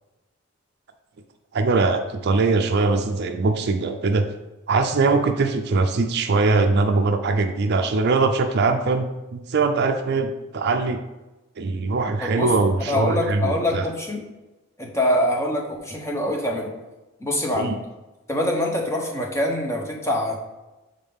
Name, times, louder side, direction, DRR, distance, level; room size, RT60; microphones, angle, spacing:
voice 1, 1.5-4.2 4.7-11.0 11.6-13.8 17.5-17.8, right 3 dB, 50° right, 6 dB, 0.4 m, -21 dB
voice 2, 12.2-12.5 12.8-14.3 14.8-16.7 17.2-17.8 18.3-20.4, left 1 dB, 15° left, 0 dB, 0.8 m, -24 dB
7.2 x 3.8 x 3.5 m, 1.1 s
head